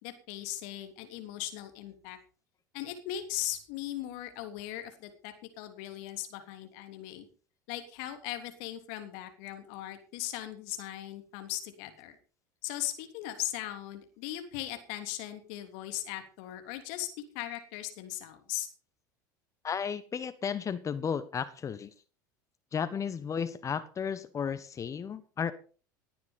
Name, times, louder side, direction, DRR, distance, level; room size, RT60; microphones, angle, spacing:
voice 1, 0.0-2.2 2.7-7.3 7.7-12.2 12.6-17.1 17.3-18.7, left 13 dB, 65° left, 7 dB, 3.2 m, -38 dB
voice 2, 19.6-21.9 22.7-25.5, left 7 dB, 30° left, 13 dB, 1.3 m, -34 dB
18.5 x 9.4 x 5.4 m, 0.39 s
hypercardioid pair, 75°, 10 cm